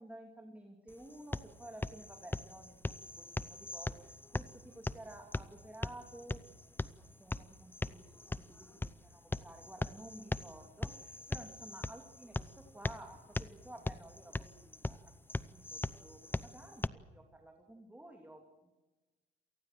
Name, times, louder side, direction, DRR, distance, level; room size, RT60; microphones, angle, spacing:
voice 1, 0.0-6.4 7.0-15.1 15.5-18.7, right 1 dB, 10° right, 2 dB, 2.9 m, -53 dB
sound 1, 0.9-16.9, left 2 dB, 10° left, 0.7 m, -41 dB
28.0 x 19.0 x 7.6 m, 1.2 s
cardioid pair, 105°, 21 cm